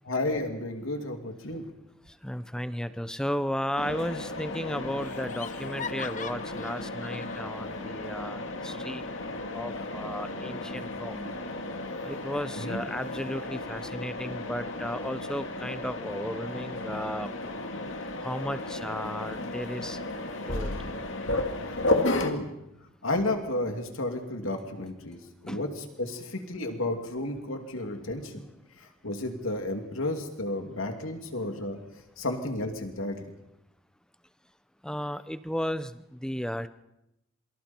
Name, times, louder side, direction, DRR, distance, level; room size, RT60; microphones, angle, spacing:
voice 1, 0.1-1.7 12.6-12.8 21.6-22.5 23.0-28.4 28.8-31.8 32.2-33.2, left 2 dB, 80° left, 4 dB, 2.9 m, -32 dB
voice 2, 2.1-9.0 9.5-11.2 12.0-17.3 18.2-20.0 20.5-20.7 25.5-25.7 34.8-36.7, equal, 5° left, 12 dB, 0.7 m, -34 dB
Laughter, 3.7-4.3 4.5-4.6 5.0-7.5, left 6 dB, 40° left, 0.8 m, -41 dB
Mechanisms, 3.8-22.3, left 2 dB, 65° left, 2.3 m, -34 dB
27.0 x 24.5 x 4.5 m, 0.86 s
head